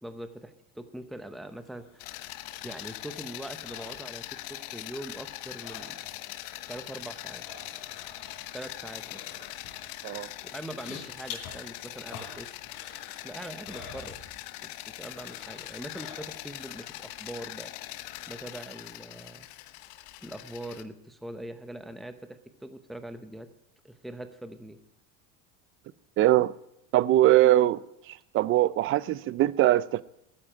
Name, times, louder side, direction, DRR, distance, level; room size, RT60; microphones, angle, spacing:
voice 1, 0.0-1.9 2.6-6.0 6.7-7.4 8.5-9.2 10.4-12.6 13.2-14.2 14.6-17.7 18.3-19.5 20.2-23.5 23.8-24.8, right 1 dB, ahead, 0.8 m, -42 dB
sound 1, 1.7-4.7 5.0-6.3 6.6-14.8 15.1-16.6 17.0-17.1, left 6 dB, 50° left, 3.5 m, -48 dB
sound 2, 2.0-20.8, left 16 dB, 70° left, 1.0 m, -42 dB
voice 2, 26.2-26.5 26.9-27.8 28.3-30.0, right 14 dB, 35° right, 0.4 m, -21 dB
12.5 x 9.8 x 8.8 m
cardioid pair, 150°, 38 cm